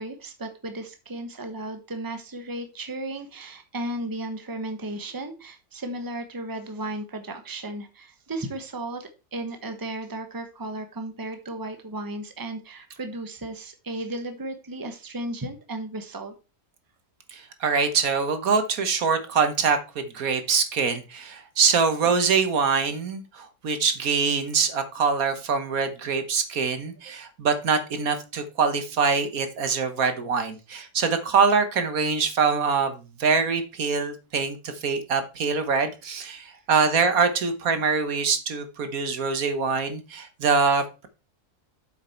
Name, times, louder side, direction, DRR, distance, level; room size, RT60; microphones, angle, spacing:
voice 1, 0.0-16.3, right 1 dB, 15° right, 7 dB, 1.1 m, -35 dB
voice 2, 17.3-41.1, right 5 dB, 70° right, 9 dB, 1.6 m, -24 dB
7.8 x 6.5 x 4.4 m, 0.29 s
omnidirectional pair, 1.6 m